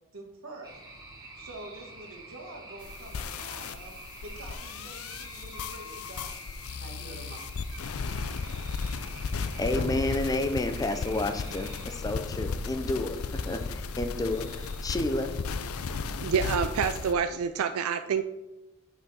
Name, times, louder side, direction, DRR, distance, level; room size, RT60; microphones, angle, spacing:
voice 1, 0.1-0.7 1.4-3.9 4.2-6.4 6.8-7.5, right 2 dB, 70° right, 0 dB, 1.7 m, -46 dB
sound 1, 0.6-17.2, right 2 dB, 20° right, 1.3 m, -46 dB
sound 2, 2.8-17.1, left 5 dB, 90° left, 0.5 m, -35 dB
sound 3, 6.4-6.6 7.2-7.3 9.7-11.2 11.6-11.7, left 1 dB, 70° left, 2.2 m, -38 dB
voice 2, 9.6-13.2 13.4-15.4, left 2 dB, 15° left, 8 dB, 0.5 m, -30 dB
voice 3, 16.2-18.2, right 6 dB, 85° right, 9 dB, 0.4 m, -27 dB
6.6 x 6.0 x 4.2 m, 1.0 s
head